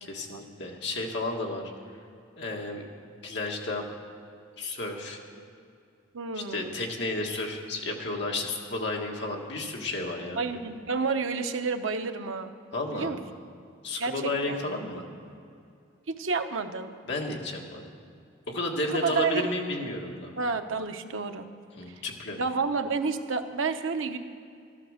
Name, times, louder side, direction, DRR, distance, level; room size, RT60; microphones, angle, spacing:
voice 1, 0.0-1.7 2.4-2.8 3.2-3.8 4.6-5.2 6.4-10.4 12.7-13.1 13.8-15.0 17.1-17.8 18.5-20.3 21.8-22.4, left 2 dB, 55° left, 0 dB, 1.7 m, -32 dB
voice 2, 6.1-6.7 10.4-12.5 12.9-13.2 14.0-14.6 16.1-16.9 18.9-19.5 20.4-21.5 21.9-22.0 22.4-24.2, right 4 dB, 75° right, 7 dB, 0.9 m, -30 dB
13.5 x 12.0 x 6.5 m, 2.5 s
head